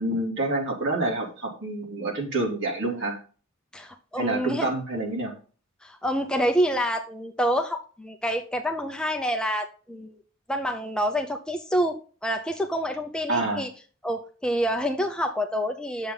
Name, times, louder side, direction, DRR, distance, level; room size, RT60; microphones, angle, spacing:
voice 1, 0.0-3.2 4.2-5.3 13.3-13.6, right 2 dB, 60° right, -1 dB, 3.0 m, -27 dB
voice 2, 3.7-4.7 5.8-10.2 10.5-13.7 14.0-16.1, equal, 5° left, 3 dB, 0.6 m, -27 dB
9.3 x 7.1 x 3.9 m, 0.39 s
head